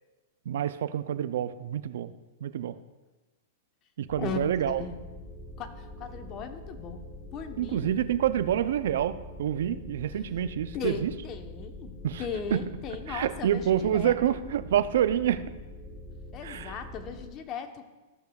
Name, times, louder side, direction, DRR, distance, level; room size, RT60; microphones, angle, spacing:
voice 1, 0.5-2.1 2.4-2.7 4.0-4.8 7.6-11.1 12.0-12.2 12.5-12.6 13.1-15.4 16.4-16.8, right 10 dB, 75° right, 13 dB, 0.4 m, -27 dB
sound 1, 4.1-17.3, left 1 dB, 20° left, 1.2 m, -44 dB
voice 2, 4.7-5.0 5.6-7.0 7.3-8.0 10.7-14.4 16.3-17.9, left 6 dB, 35° left, 7 dB, 0.9 m, -38 dB
14.0 x 6.8 x 2.3 m, 1.2 s
hypercardioid pair, 125°, 0 cm